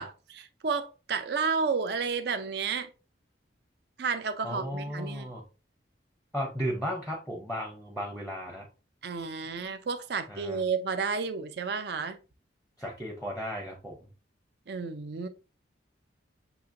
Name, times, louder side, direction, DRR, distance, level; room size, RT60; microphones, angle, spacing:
voice 1, 0.0-2.9 4.0-5.3 9.0-12.2 14.7-15.3, right 5 dB, 55° right, 0.5 m, -31 dB
voice 2, 4.4-5.4 6.3-8.7 10.3-10.6 12.8-14.1, equal, 5° right, 0.6 m, -35 dB
7.0 x 2.9 x 2.6 m
head